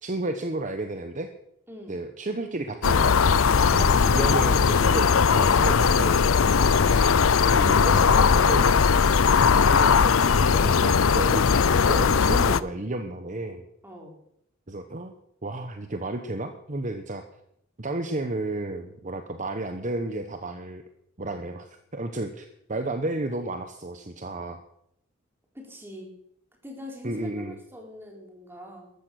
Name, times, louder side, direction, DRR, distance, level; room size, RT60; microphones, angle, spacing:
voice 1, 0.0-1.3 1.9-6.2 7.4-8.8 9.3-13.6 14.7-15.1 15.4-17.2 17.8-20.8 21.2-24.6 27.0-27.6, right 2 dB, 40° right, 7 dB, 1.1 m, -32 dB
sound 1, 2.8-12.6, left 6 dB, 75° left, 0.6 m, -19 dB
voice 2, 13.8-14.1 25.5-26.1 26.6-28.9, left 1 dB, 10° right, 0 dB, 4.0 m, -42 dB
14.0 x 13.5 x 6.4 m, 0.73 s
head